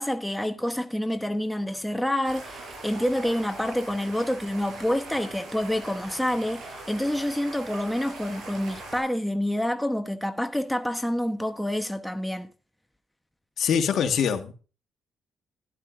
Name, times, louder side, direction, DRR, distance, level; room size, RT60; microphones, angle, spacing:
voice 1, 0.0-12.5, left 1 dB, ahead, 0.9 m, -28 dB
sound 1, 2.2-9.0, right 2 dB, 80° right, 6.0 m, -41 dB
voice 2, 13.6-14.5, left 7 dB, 65° left, 1.5 m, -24 dB
12.0 x 11.0 x 2.5 m
cardioid pair, 90°, 0 cm